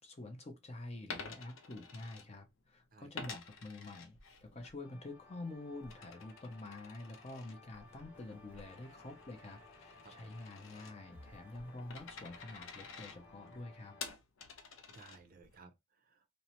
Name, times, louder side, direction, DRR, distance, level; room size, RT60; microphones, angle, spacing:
voice 1, 0.0-14.0, left 2 dB, 30° left, 0.5 m, -48 dB
Coin (dropping), 1.0-2.7 3.1-4.7 5.1-15.6, left 5 dB, 85° left, 0.6 m, -51 dB
voice 2, 2.9-3.3 10.0-10.4 14.9-16.3, right 4 dB, 45° right, 0.4 m, -59 dB
sound 1, 4.8-14.1, left 3 dB, 65° left, 1.1 m, -60 dB
sound 2, 8.1-13.4, left 1 dB, 10° left, 1.0 m, -66 dB
2.6 x 2.0 x 2.9 m
head